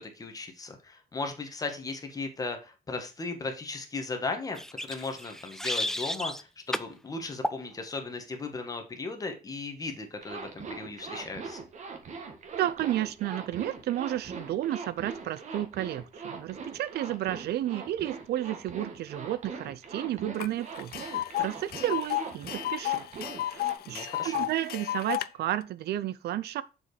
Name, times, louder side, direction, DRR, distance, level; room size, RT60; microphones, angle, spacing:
voice 1, 0.0-11.6 23.9-24.5, left 3 dB, 20° left, 1.5 m, -37 dB
sound 1, 4.5-6.4 6.7-6.9 7.4-7.6, left 1 dB, 5° left, 0.4 m, -33 dB
Zipper (clothing), 10.2-23.7, right 4 dB, 45° right, 1.7 m, -41 dB
voice 2, 12.5-23.0 23.4-26.6, right 13 dB, 75° right, 0.6 m, -32 dB
Tick, 20.4-20.5 20.8-25.3, left 14 dB, 65° left, 0.5 m, -32 dB
7.0 x 5.4 x 4.8 m
cardioid pair, 175°, 17 cm